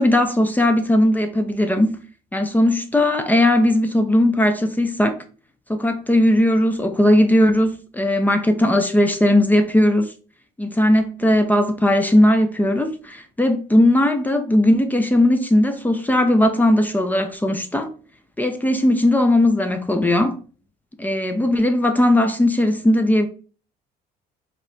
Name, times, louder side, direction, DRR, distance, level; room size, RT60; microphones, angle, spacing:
voice 1, 0.0-1.9 2.3-5.2 5.7-10.1 10.6-17.9 18.4-20.4 21.0-23.3, left 1 dB, 10° left, 0.6 m, -18 dB
4.8 x 2.9 x 3.4 m
cardioid pair, 110°, 17 cm